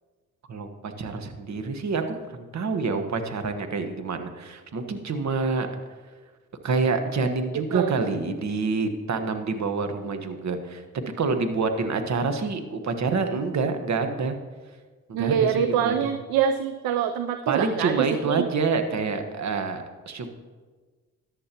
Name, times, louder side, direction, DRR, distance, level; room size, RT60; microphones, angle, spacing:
voice 1, 0.5-5.7 6.6-14.4 15.1-15.9 17.5-20.3, right 4 dB, 50° right, 7 dB, 1.3 m, -27 dB
voice 2, 7.5-8.0 15.1-18.5, right 8 dB, 75° right, 9 dB, 0.6 m, -25 dB
14.0 x 11.0 x 3.0 m, 1.4 s
supercardioid pair, 55°, 36 cm